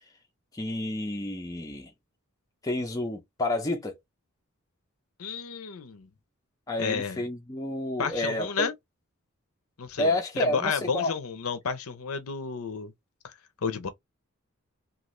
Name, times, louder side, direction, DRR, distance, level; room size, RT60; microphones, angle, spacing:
voice 1, 0.5-1.9 2.6-4.0 6.7-8.7 10.0-11.1, left 1 dB, 15° left, 0.4 m, -30 dB
voice 2, 5.2-6.1 6.8-7.2 8.0-8.7 9.8-12.9 13.2-13.3 13.6-13.9, left 5 dB, 80° left, 0.6 m, -31 dB
2.5 x 2.4 x 3.0 m
head